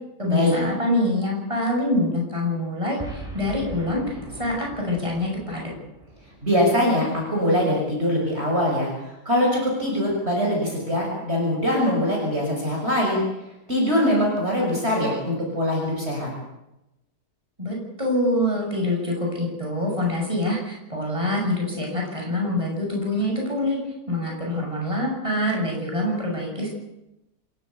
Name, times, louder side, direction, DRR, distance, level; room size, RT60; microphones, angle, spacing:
voice 1, 0.2-5.6 17.6-23.8 24.1-26.7, left 1 dB, 20° right, -1 dB, 8.0 m, -25 dB
Boom, 3.0-7.4, right 2 dB, ahead, 7.4 m, -40 dB
voice 2, 6.4-8.9 9.2-13.2 13.7-16.3, left 1 dB, 40° right, -1 dB, 6.7 m, -22 dB
27.5 x 16.0 x 8.3 m, 0.90 s
omnidirectional pair, 1.7 m